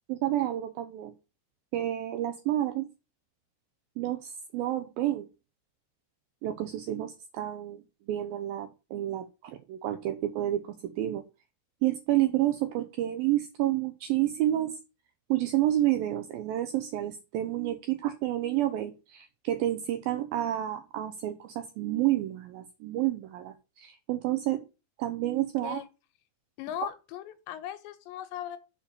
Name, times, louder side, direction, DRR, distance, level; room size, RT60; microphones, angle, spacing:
voice 1, 0.1-1.1 1.7-2.9 4.0-5.3 6.4-7.8 8.1-11.2 11.8-14.8 15.3-24.6 25.0-25.8, right 13 dB, 80° right, 2.1 m, -29 dB
voice 2, 26.6-28.6, left 11 dB, 85° left, 3.1 m, -38 dB
6.9 x 4.9 x 6.9 m
omnidirectional pair, 5.0 m